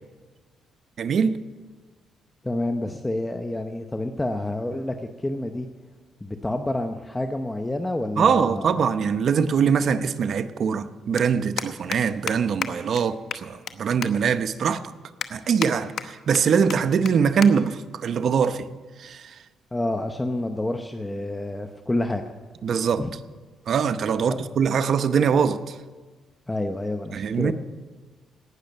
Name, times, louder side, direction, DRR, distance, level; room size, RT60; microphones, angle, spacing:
voice 1, 1.0-1.4 8.2-14.8 15.3-18.7 19.0-19.4 22.6-23.0 23.7-25.8 27.1-27.5, right 6 dB, 60° right, 0.8 m, -22 dB
voice 2, 2.4-5.7 6.2-8.7 19.7-22.2 23.0-23.1 24.3-24.4 26.5-27.5, left 1 dB, 15° left, 0.8 m, -28 dB
sound 1, 11.2-11.3 11.6-12.0 12.3-12.4 12.6-12.7 13.0-13.1 13.3-13.7 14.0-14.1 14.6-14.7 15.2-15.7 16.0-16.4 16.7-16.8 17.0-17.1 17.4-17.5 17.8-18.1 18.8-19.1, left 8 dB, 65° left, 0.9 m, -31 dB
18.0 x 6.5 x 9.4 m
cardioid pair, 90°, 0 cm